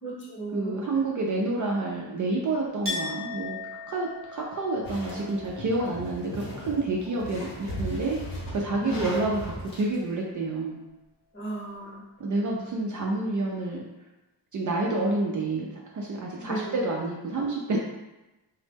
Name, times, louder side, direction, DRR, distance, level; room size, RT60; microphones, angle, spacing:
voice 1, 0.0-0.8 8.8-9.1 11.3-12.0 16.4-16.7, right 2 dB, 30° left, -5 dB, 0.8 m, -35 dB
voice 2, 0.5-3.6 3.9-8.2 8.5-10.8 12.2-13.8 14.5-17.8, right 2 dB, 50° right, -2 dB, 0.4 m, -29 dB
Chink clink, 2.8-8.4 8.7-9.5, left 3 dB, 30° right, 0.9 m, -40 dB
sound 1, 4.8-9.9, equal, 55° left, 0.8 m, -38 dB
3.0 x 2.0 x 3.3 m, 1.0 s
wide cardioid pair, 145°, 41 cm